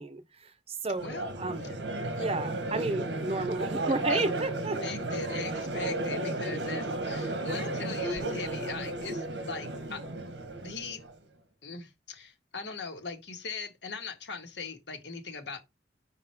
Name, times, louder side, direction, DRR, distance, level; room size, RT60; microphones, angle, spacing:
voice 1, 0.0-1.6 2.2-4.8, right 3 dB, 35° right, 0.8 m, -32 dB
Crowd, 1.0-11.1, right 2 dB, 90° right, 1.4 m, -33 dB
voice 2, 4.8-10.4 10.6-11.0 11.6-15.6, left 4 dB, 80° left, 1.9 m, -40 dB
5.1 x 4.3 x 6.0 m
head